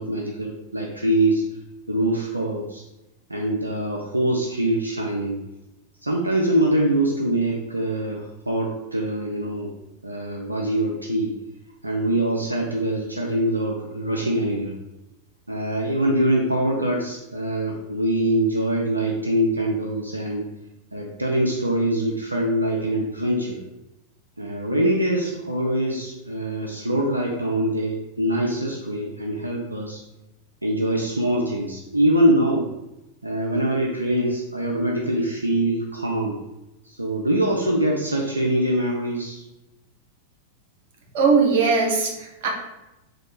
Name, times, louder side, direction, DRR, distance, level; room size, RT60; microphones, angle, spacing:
voice 1, 0.0-1.4 1.9-2.8 3.3-5.4 6.0-9.7 10.0-11.3 11.8-14.7 15.5-20.5 20.9-23.6 24.4-30.0 30.6-32.7 33.2-36.4 37.0-39.4, right 1 dB, 85° right, -1 dB, 0.5 m, -23 dB
voice 2, 41.1-42.5, right 4 dB, 55° right, 0 dB, 0.9 m, -19 dB
4.2 x 2.4 x 4.6 m, 0.97 s
figure-of-eight pair, 90°, 0 cm